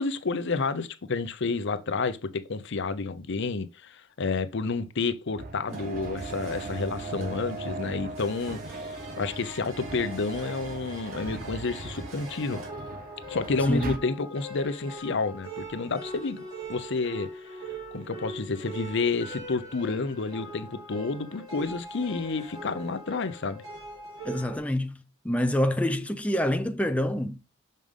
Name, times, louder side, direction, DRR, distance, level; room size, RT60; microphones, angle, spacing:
voice 1, 0.0-12.6 13.3-16.4 16.7-17.3 17.9-23.6, left 4 dB, 60° left, 0.7 m, -30 dB
sound 1, 5.4-14.0, right 2 dB, 45° right, 0.8 m, -39 dB
sound 2, 5.7-12.7, right 6 dB, 85° right, 3.3 m, -44 dB
sound 3, 12.2-24.6, right 1 dB, 20° right, 3.7 m, -41 dB
voice 2, 13.7-14.0 24.2-27.4, left 1 dB, 5° left, 0.5 m, -27 dB
6.4 x 5.3 x 3.6 m
head